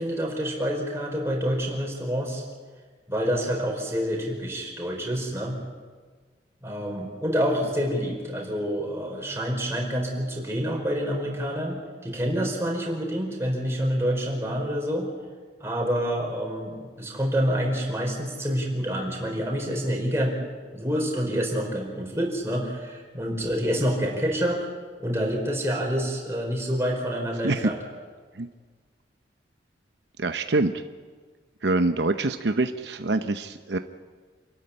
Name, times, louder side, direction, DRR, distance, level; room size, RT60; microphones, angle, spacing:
voice 1, 0.0-2.4 3.1-5.6 6.6-15.1 15.6-20.4 20.7-24.7 25.0-27.8, equal, 15° right, 0 dB, 4.7 m, -27 dB
voice 2, 30.2-30.8 31.6-33.8, right 2 dB, 75° right, 8 dB, 0.8 m, -25 dB
28.0 x 13.5 x 9.9 m, 1.5 s
head